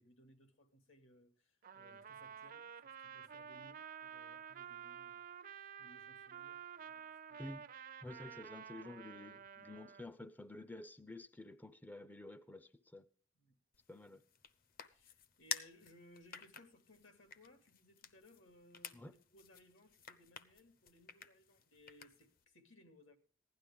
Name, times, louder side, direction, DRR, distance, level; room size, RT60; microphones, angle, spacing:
voice 1, 0.0-7.5 13.4-13.6 14.9-23.2, left 1 dB, 80° left, 7 dB, 2.4 m, -64 dB
Trumpet, 1.6-10.1, right 8 dB, 45° right, 0.5 m, -51 dB
voice 2, 8.0-13.1 13.9-14.2 18.9-19.1, left 2 dB, 10° left, 13 dB, 0.5 m, -51 dB
sound 1, 13.7-22.4, left 7 dB, 45° left, 0.8 m, -51 dB
16.0 x 11.5 x 3.5 m, 0.42 s
head